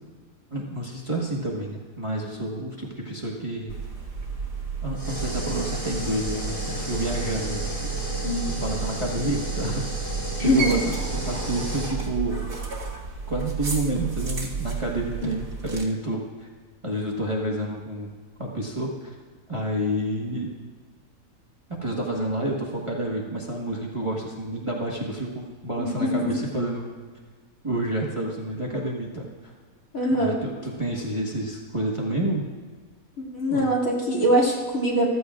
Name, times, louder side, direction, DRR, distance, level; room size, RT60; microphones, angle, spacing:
voice 1, 0.5-3.8 4.8-7.9 8.6-9.8 10.4-12.5 13.3-16.5 16.8-18.1 18.4-19.1 19.5-20.5 21.7-26.9 27.6-29.5 30.1-32.5 33.5-33.7, right 1 dB, 20° right, -3 dB, 1.3 m, -29 dB
sound 1, 3.7-15.8, right 6 dB, 60° right, 2.1 m, -32 dB
sound 2, 5.0-11.9, left 1 dB, 15° left, 2.8 m, -34 dB
voice 2, 8.2-8.6 10.4-10.7 15.2-15.3 25.8-26.3 29.9-30.4 33.2-35.1, equal, 60° left, -3 dB, 2.7 m, -23 dB
15.0 x 13.5 x 2.4 m, 1.5 s
omnidirectional pair, 1.7 m